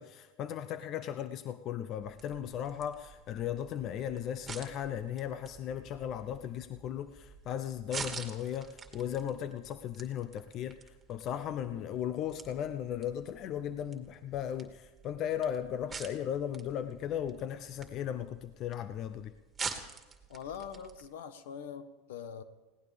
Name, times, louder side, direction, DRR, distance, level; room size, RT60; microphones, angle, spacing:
voice 1, 0.0-19.3, left 9 dB, 50° left, 11 dB, 0.6 m, -36 dB
sound 1, 2.0-21.1, right 5 dB, 20° right, 2.3 m, -48 dB
voice 2, 20.3-22.4, left 7 dB, 80° left, 12 dB, 1.2 m, -43 dB
20.5 x 17.5 x 3.5 m, 1.2 s
hypercardioid pair, 95°, 0 cm